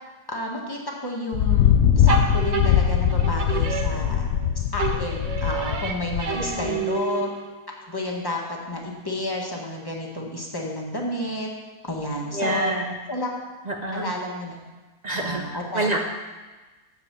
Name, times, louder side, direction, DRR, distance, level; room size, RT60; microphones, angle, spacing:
voice 1, 0.3-4.3 4.5-7.3 7.9-8.4 8.7-11.5 11.8-12.7 13.1-13.3 13.9-14.6 15.1-15.9, left 1 dB, 15° left, -1 dB, 1.5 m, -31 dB
Thunder, 1.3-6.8, left 9 dB, 70° left, 0.7 m, -21 dB
sound 1, 2.1-4.4 4.8-7.6, right 6 dB, 45° right, 1.0 m, -30 dB
voice 2, 6.3-6.9 12.3-13.0 13.7-14.1 15.0-16.0, right 2 dB, 75° right, 2 dB, 0.4 m, -28 dB
7.9 x 7.3 x 7.4 m, 1.2 s
omnidirectional pair, 1.8 m